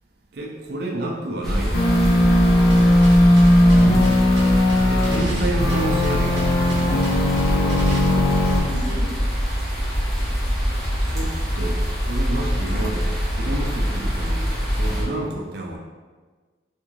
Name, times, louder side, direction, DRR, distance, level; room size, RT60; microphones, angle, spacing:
voice 1, 0.3-2.3 4.9-6.4 11.0-15.8, right 2 dB, 60° right, 0 dB, 0.5 m, -29 dB
sound 1, 1.4-15.0, equal, ahead, 0.8 m, -24 dB
sound 2, 1.7-5.2 5.6-8.6, left 1 dB, 55° left, 0.5 m, -17 dB
sound 3, 2.7-8.1, right 1 dB, 80° right, 0.8 m, -32 dB
voice 2, 7.3-9.4 12.7-12.9, equal, 40° left, -9 dB, 1.3 m, -37 dB
3.4 x 2.5 x 3.0 m, 1.4 s
head